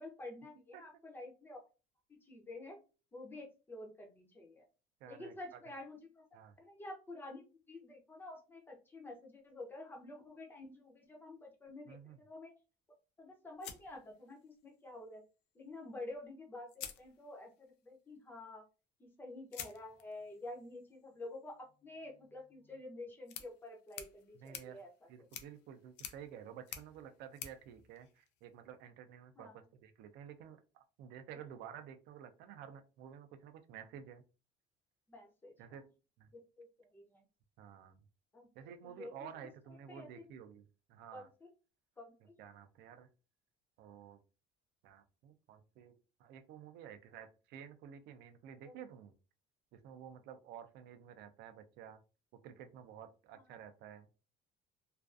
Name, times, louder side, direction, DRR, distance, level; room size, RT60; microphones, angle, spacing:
voice 1, 0.0-1.6 2.1-2.8 3.1-4.7 5.1-6.2 6.6-12.0 12.2-12.5 13.2-15.2 15.5-18.6 19.0-24.9 29.4-29.6 31.3-31.4 35.1-35.8 36.3-37.2 38.3-39.3 39.9-40.2 41.1-41.5 42.0-42.3 48.7-48.8, left 2 dB, 10° left, 1 dB, 0.5 m, -49 dB
voice 2, 5.0-5.6 6.3-6.6 11.9-12.2 24.3-24.8 25.1-34.2 35.6-35.8 36.2-36.3 37.6-38.0 38.6-41.3 42.4-43.1 43.8-44.2 44.8-45.9 46.2-49.1 49.7-52.0 52.4-54.1, right 8 dB, 60° right, 9 dB, 0.4 m, -52 dB
sound 1, 13.6-14.7 16.1-16.2 16.7-17.7 19.5-28.7, left 9 dB, 65° left, 0.4 m, -52 dB
2.4 x 2.3 x 2.4 m, 0.33 s
cardioid pair, 170°, 19 cm